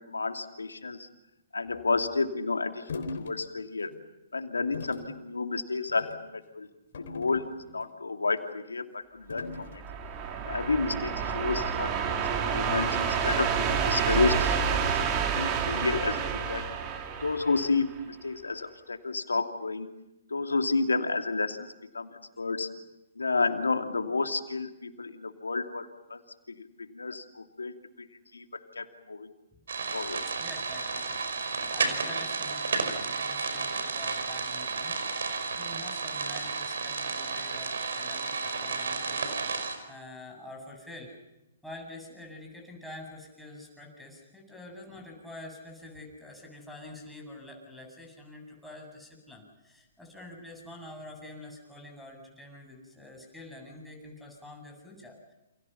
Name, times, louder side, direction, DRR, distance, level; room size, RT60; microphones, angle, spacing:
voice 1, 0.1-1.1 1.5-3.9 4.3-6.7 7.1-7.5 7.7-9.8 10.4-13.0 13.2-15.1 15.4-16.7 17.2-19.9 20.3-21.7 21.9-22.7 23.2-26.2 26.5-28.1 28.3-28.4 28.8-29.3 29.9-30.3, left 3 dB, 85° left, 6 dB, 2.5 m, -31 dB
sound 1, 2.9-3.3 3.8-4.0 4.7-5.1 5.9-6.2 6.9-7.9 9.3-9.8, left 3 dB, 60° left, 3.6 m, -40 dB
sound 2, 9.5-18.0, right 6 dB, 30° right, 3.6 m, -29 dB
sound 3, 29.7-39.8, right 4 dB, 70° right, 5.3 m, -32 dB
voice 2, 30.4-31.1 31.4-35.0 35.5-39.3 39.9-41.2 41.6-55.3, left 1 dB, ahead, -1 dB, 7.9 m, -47 dB
29.5 x 28.5 x 5.9 m, 0.91 s
figure-of-eight pair, 125°, 0 cm